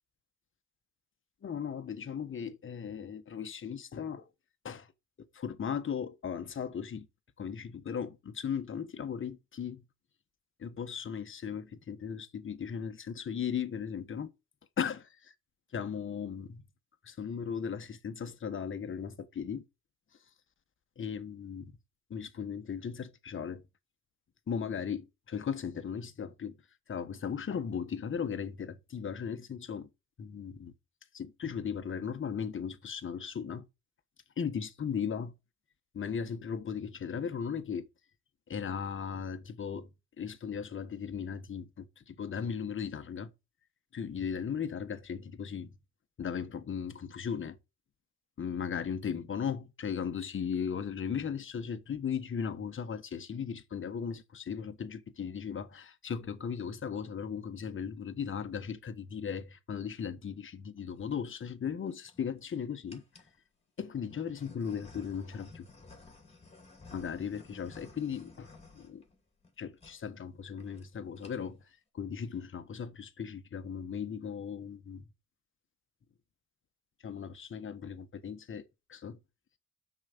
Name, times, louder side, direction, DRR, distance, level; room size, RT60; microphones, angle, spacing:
voice 1, 1.4-4.3 4.6-4.9 5.3-7.1 7.4-9.8 10.6-14.3 14.8-15.2 15.7-16.6 17.0-19.6 21.0-21.7 22.1-23.6 24.5-26.6 26.9-29.9 30.2-30.7 31.1-33.7 34.4-35.3 35.9-37.9 38.5-39.9 40.2-43.3 43.9-45.8 46.2-47.6 48.4-63.0 63.8-65.7 66.9-69.0 69.6-71.7 71.9-75.0 77.0-78.6 78.9-79.2, left 7 dB, 40° left, 1.3 m, -37 dB
sound 1, 60.8-61.2 61.9-62.4 62.9-63.4 64.1-69.5 69.8-70.0 70.3-70.4 70.6-70.9 71.1-71.6, left 3 dB, 20° left, 2.5 m, -54 dB
6.3 x 5.0 x 6.6 m
cardioid pair, 90°, 30 cm